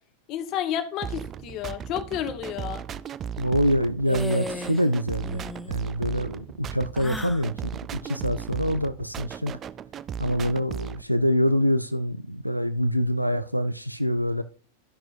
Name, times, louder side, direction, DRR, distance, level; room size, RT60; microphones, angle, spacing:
voice 1, 0.3-2.8, left 10 dB, 40° left, 1.2 m, -31 dB
sound 1, 1.0-11.0, right 8 dB, 25° right, 0.4 m, -36 dB
voice 2, 3.4-5.4 5.7-7.7 8.0-9.5 10.2-14.4, equal, 90° right, 0.4 m, -25 dB
sound 2, 4.1-4.9 5.2-5.7 6.9-7.5, left 1 dB, 5° left, 1.0 m, -35 dB
13.5 x 6.0 x 2.5 m
figure-of-eight pair, 90°, 0 cm